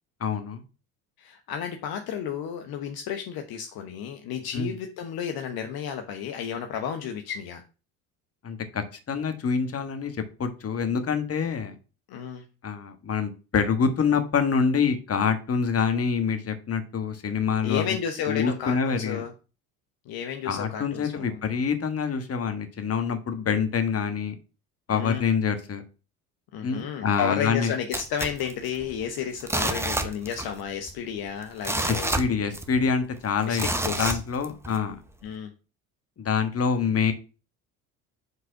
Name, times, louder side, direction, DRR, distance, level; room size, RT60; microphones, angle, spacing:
voice 1, 0.2-0.6 4.5-4.7 8.4-10.1 10.4-11.7 12.6-17.9 18.3-19.2 20.4-24.3 24.9-25.8 26.6-27.7 31.9-35.0 36.2-37.1, left 6 dB, 35° left, 8 dB, 1.4 m, -26 dB
voice 2, 1.2-7.6 12.1-12.4 17.6-19.3 20.1-21.4 24.9-25.3 26.5-32.2 33.5-34.2 35.2-35.5, left 8 dB, 55° left, 5 dB, 0.9 m, -32 dB
sound 1, 27.9-29.0 29.4-30.6 30.9-31.0 31.4-32.9 33.5-34.8 35.3-35.4, right 1 dB, 5° right, 0.9 m, -29 dB
5.4 x 3.9 x 5.7 m, 0.33 s
hypercardioid pair, 65°, 43 cm